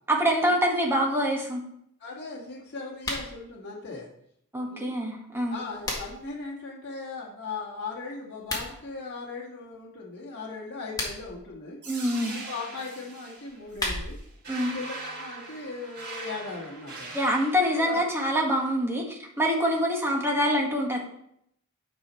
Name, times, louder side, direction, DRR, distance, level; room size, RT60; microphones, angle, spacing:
voice 1, 0.1-1.6 4.5-5.6 11.9-12.3 14.5-14.7 17.1-21.0, equal, 10° right, 0 dB, 1.5 m, -25 dB
voice 2, 2.0-4.1 4.7-4.9 5.5-11.8 12.2-14.2 14.5-17.1 17.8-18.0, left 4 dB, 50° left, -5 dB, 2.0 m, -38 dB
sound 1, 2.9-3.3 5.3-6.3 8.3-8.7 10.7-11.4 13.4-14.3, left 1 dB, 15° left, 1.9 m, -34 dB
sound 2, 11.8-17.8, right 3 dB, 50° right, 3.1 m, -41 dB
9.6 x 5.7 x 4.4 m, 0.73 s
head